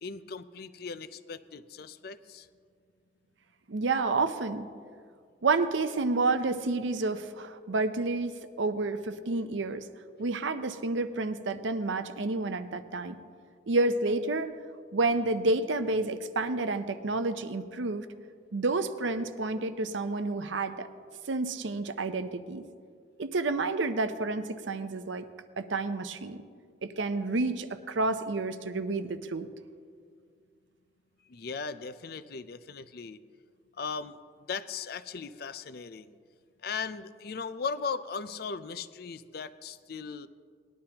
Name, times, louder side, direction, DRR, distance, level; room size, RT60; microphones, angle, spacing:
voice 1, 0.0-2.5 31.3-33.2 33.7-34.2 34.5-36.2 36.6-40.3, left 5 dB, 55° left, 13 dB, 0.4 m, -38 dB
voice 2, 3.7-4.7 5.4-9.8 10.2-13.2 13.7-14.5 14.9-18.1 18.5-20.9 21.3-22.6 23.2-25.2 25.6-26.4 26.8-29.5, right 3 dB, 80° right, 10 dB, 0.6 m, -29 dB
19.5 x 11.5 x 2.9 m, 2.1 s
head